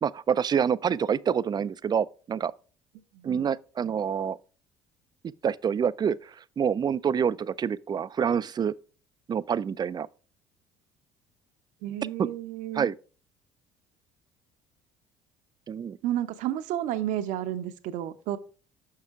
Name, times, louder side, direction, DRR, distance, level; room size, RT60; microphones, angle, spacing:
voice 1, 0.0-2.5 3.2-4.4 5.4-8.7 9.3-10.1 12.2-12.3 12.7-12.9 15.7-16.0, right 7 dB, 30° right, 0.4 m, -27 dB
voice 2, 3.1-3.5 11.8-12.9 16.0-18.4, right 12 dB, 65° right, 0.8 m, -31 dB
6.6 x 6.3 x 3.6 m
hypercardioid pair, 65°, 14 cm